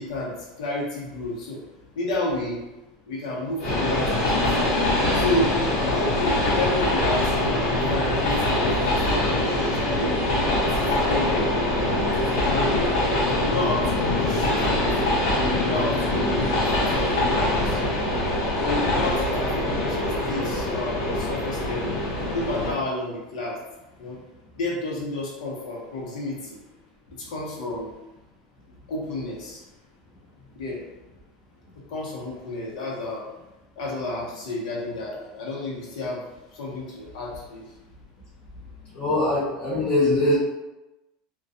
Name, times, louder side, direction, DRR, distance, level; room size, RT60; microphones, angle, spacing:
voice 1, 0.0-1.6 2.0-2.6 3.1-4.6 5.1-5.5 5.9-10.2 10.6-11.7 12.2-13.0 13.4-15.3 15.6-16.6 16.9-17.8 18.6-21.9 22.3-23.6 24.0-24.2 24.6-26.6 27.1-27.9 28.9-29.6 30.5-30.8 31.9-33.3 33.8-36.2 36.5-37.7, left 2 dB, 90° left, -3 dB, 0.8 m, -31 dB
Train, 3.6-22.7, left 1 dB, 55° left, 0.9 m, -23 dB
voice 2, 38.9-40.4, left 1 dB, 30° left, -9 dB, 0.6 m, -22 dB
2.3 x 2.2 x 2.6 m, 1.0 s
supercardioid pair, 165°, 4 cm